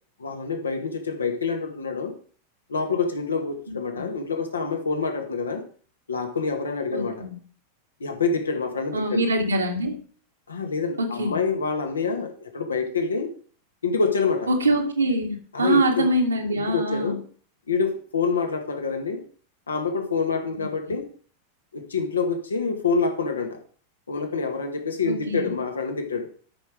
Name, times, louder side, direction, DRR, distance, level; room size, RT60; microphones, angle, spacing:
voice 1, 0.2-2.1 2.7-5.7 6.1-7.3 8.0-9.3 10.5-13.3 13.8-14.5 15.5-16.1 16.5-17.2 17.7-19.2 19.7-21.1 21.7-23.6 24.1-26.3, left 4 dB, 75° left, 6 dB, 1.8 m, -26 dB
voice 2, 3.7-4.1 6.9-7.4 8.9-10.0 11.0-11.4 14.5-17.2 20.6-20.7 25.1-25.5, right 1 dB, 75° right, 3 dB, 2.2 m, -24 dB
12.5 x 6.1 x 4.9 m, 0.43 s
figure-of-eight pair, 90°, 0 cm